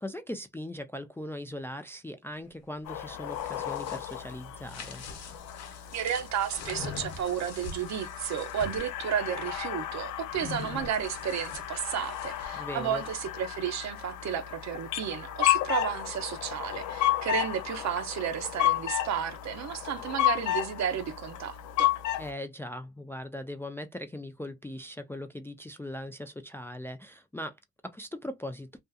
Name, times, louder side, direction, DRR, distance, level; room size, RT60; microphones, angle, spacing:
voice 1, 0.0-5.0 12.5-13.0 22.2-27.6 27.8-28.7, left 1 dB, 10° left, 0.3 m, -39 dB
sound 1, 2.9-22.3, left 13 dB, 75° left, 0.5 m, -33 dB
sound 2, 3.1-8.9 10.3-12.6, left 5 dB, 60° left, 0.8 m, -43 dB
voice 2, 5.9-21.9, right 9 dB, 65° right, 0.7 m, -32 dB
2.6 x 2.4 x 2.3 m
cardioid pair, 90°, 30 cm